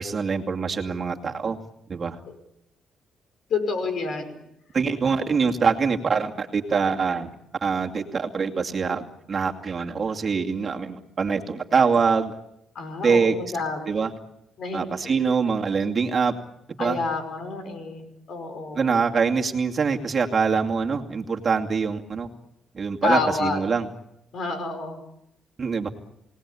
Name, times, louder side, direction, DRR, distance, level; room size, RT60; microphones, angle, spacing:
voice 1, 0.0-1.6 1.9-2.2 4.7-7.3 7.6-12.3 13.0-13.3 13.9-14.1 14.7-16.3 16.8-17.0 18.7-22.3 22.7-23.9 25.6-25.9, right 5 dB, 40° right, 2 dB, 2.5 m, -24 dB
voice 2, 3.5-4.4 12.7-13.9 14.6-15.1 16.8-18.9 23.0-23.6 24.3-25.0, left 4 dB, 65° left, 8 dB, 5.6 m, -29 dB
29.0 x 19.0 x 8.5 m, 0.81 s
cardioid pair, 90°, 0 cm